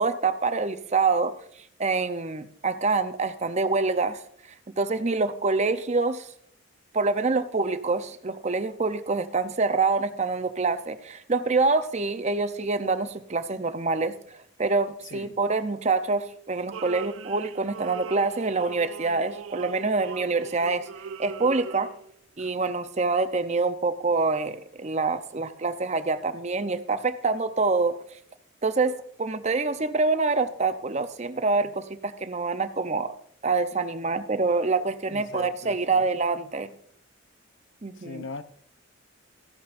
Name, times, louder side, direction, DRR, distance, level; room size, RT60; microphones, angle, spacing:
voice 1, 0.0-1.3 1.8-4.2 4.8-6.3 6.9-14.1 14.6-20.9 21.2-21.9 22.4-28.0 28.6-33.1 33.4-36.7 37.8-38.3, right 3 dB, 35° right, 0.6 m, -26 dB
sound 1, 16.7-22.1 22.4-22.5, right 6 dB, 75° right, 0.5 m, -40 dB
voice 2, 35.1-36.0 38.0-38.4, left 4 dB, 65° left, 0.7 m, -39 dB
14.0 x 10.0 x 2.5 m
head